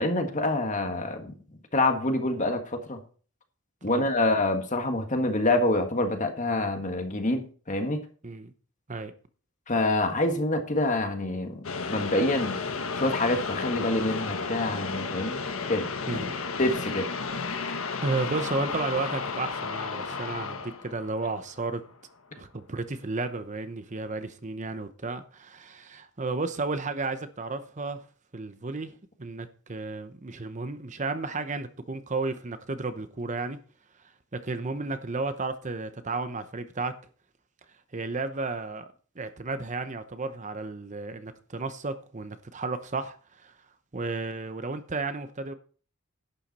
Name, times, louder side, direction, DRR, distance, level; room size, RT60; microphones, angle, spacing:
voice 1, 0.0-1.3 1.7-3.0 3.8-8.0 9.7-12.5 12.9-15.4 15.7-15.9 16.6-17.1, left 2 dB, 35° left, 1.7 m, -26 dB
sound 1, 11.6-21.9, left 4 dB, 80° left, 1.4 m, -33 dB
voice 2, 16.1-16.4 18.0-21.8 22.4-28.0 28.3-28.9 29.2-33.6 34.3-36.9 37.9-38.8 39.2-43.2 43.4-43.5 43.9-45.5, right 3 dB, 35° right, 0.8 m, -33 dB
11.5 x 9.1 x 4.2 m
head